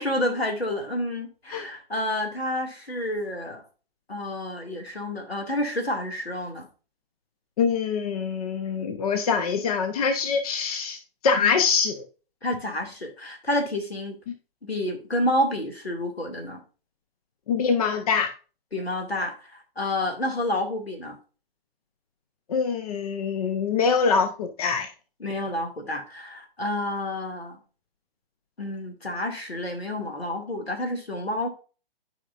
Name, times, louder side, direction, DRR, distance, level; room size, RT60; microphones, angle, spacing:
voice 1, 0.0-3.6 4.1-6.7 11.4-11.5 12.4-14.2 14.6-16.6 18.7-21.1 25.2-27.6 28.6-31.5, left 1 dB, 75° left, 3 dB, 2.5 m, -29 dB
voice 2, 7.6-12.0 17.5-18.3 22.5-24.9, left 5 dB, 40° left, 8 dB, 0.8 m, -24 dB
11.5 x 5.1 x 2.5 m, 0.35 s
figure-of-eight pair, 125°, 31 cm